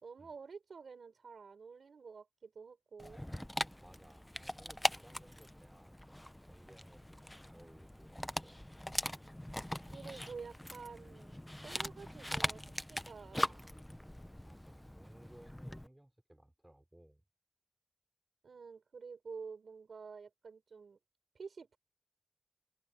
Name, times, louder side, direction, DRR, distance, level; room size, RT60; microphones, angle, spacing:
voice 1, 0.0-3.2 9.9-13.6 18.4-21.0 21.3-21.8, right 5 dB, 90° right, 4.2 m, -50 dB
Dog, 3.0-15.9, left 1 dB, 10° left, 0.8 m, -41 dB
voice 2, 3.8-8.8 10.1-10.7 14.4-17.2, right 1 dB, 15° right, 5.6 m, -61 dB
cardioid pair, 60°, 0 cm